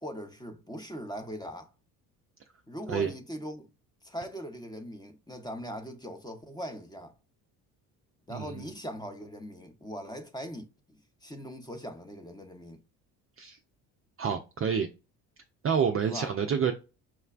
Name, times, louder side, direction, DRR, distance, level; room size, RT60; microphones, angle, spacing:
voice 1, 0.0-1.7 2.7-3.7 4.0-7.1 8.3-12.8 16.1-16.3, equal, 10° left, 0.7 m, -40 dB
voice 2, 8.3-8.7 13.4-13.6 14.2-14.9 15.6-16.7, right 7 dB, 30° right, 0.5 m, -28 dB
5.9 x 2.1 x 2.3 m
hypercardioid pair, 60°, 48 cm